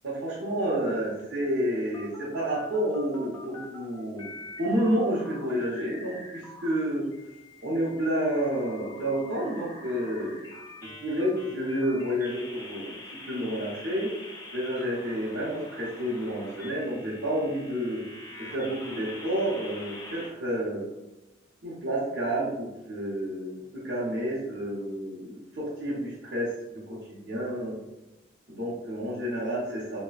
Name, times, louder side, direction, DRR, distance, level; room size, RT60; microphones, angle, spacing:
voice 1, 0.0-4.3 4.6-7.1 7.6-10.5 10.8-14.1 14.5-18.0 18.4-20.8 21.6-27.8 28.5-30.0, equal, 60° right, -8 dB, 0.8 m, -30 dB
sound 1, 1.2-3.8 4.2-6.7 7.1-20.3, left 2 dB, 20° left, 0.3 m, -45 dB
3.2 x 2.1 x 2.3 m, 0.97 s
head